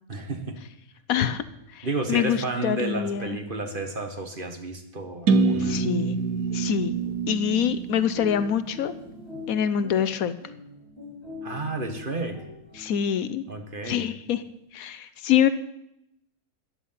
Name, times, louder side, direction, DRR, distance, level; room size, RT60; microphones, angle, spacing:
voice 1, 0.1-0.6 1.8-5.9 11.4-12.4 13.5-14.1, right 2 dB, 35° right, 6 dB, 1.5 m, -31 dB
voice 2, 1.1-1.4 1.7-3.4 5.6-6.2 6.5-6.9 7.3-8.9 9.5-10.3 12.8-13.4 13.8-14.4 14.7-15.5, left 9 dB, 75° left, 13 dB, 1.1 m, -25 dB
sound 1, 5.3-9.1, right 4 dB, 80° right, 1.4 m, -26 dB
sound 2, 5.8-13.4, left 3 dB, 15° left, 5.1 m, -44 dB
14.5 x 10.0 x 5.7 m, 0.80 s
omnidirectional pair, 1.6 m